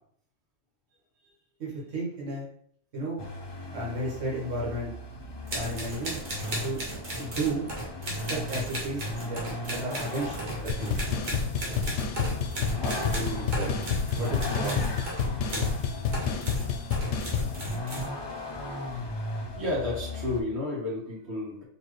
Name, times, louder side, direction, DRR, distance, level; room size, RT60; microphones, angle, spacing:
voice 1, 1.6-2.5 2.9-3.2 3.7-4.9 5.5-6.2 6.6-6.8 7.2-7.7 8.3-11.0 12.8-13.7 14.2-14.8, right 1 dB, 85° right, -5 dB, 1.7 m, -33 dB
Vehicle, 3.2-20.4, left 1 dB, 45° left, 0.3 m, -37 dB
sound 1, 5.4-15.8 16.1-18.1, right 1 dB, 40° right, 1.2 m, -36 dB
sound 2, 10.7-17.5, left 6 dB, 70° left, 0.8 m, -29 dB
voice 2, 19.5-21.6, left 2 dB, 65° right, -5 dB, 1.7 m, -31 dB
4.2 x 3.1 x 3.1 m, 0.63 s
omnidirectional pair, 1.3 m